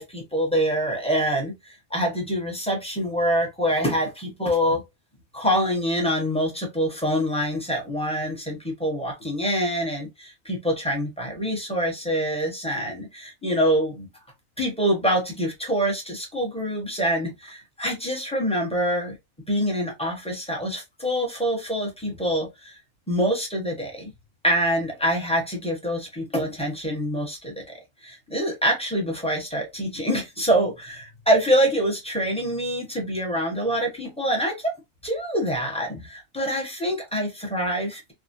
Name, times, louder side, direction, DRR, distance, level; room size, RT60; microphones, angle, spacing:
voice 1, 0.0-4.8 5.3-14.1 14.6-19.2 19.5-22.8 23.1-24.1 24.4-34.7 35.0-38.1, equal, 5° left, 0.7 m, -25 dB
3.3 x 2.1 x 2.6 m
omnidirectional pair, 1.4 m